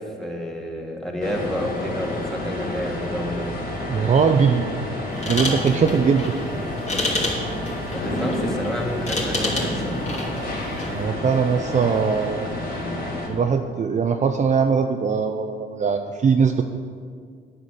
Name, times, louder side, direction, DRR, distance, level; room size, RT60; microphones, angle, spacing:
voice 1, 0.0-3.5 7.9-10.0, equal, ahead, 0 dB, 2.1 m, -29 dB
sound 1, 1.2-13.3, left 1 dB, 50° left, 3.6 m, -29 dB
voice 2, 3.9-4.6 5.3-6.3 10.9-12.5 13.3-16.6, right 6 dB, 35° right, 6 dB, 0.6 m, -20 dB
sound 2, 5.1-11.0, left 2 dB, 35° left, 3.0 m, -30 dB
9.9 x 9.1 x 6.8 m, 2.1 s
cardioid pair, 90°, 20 cm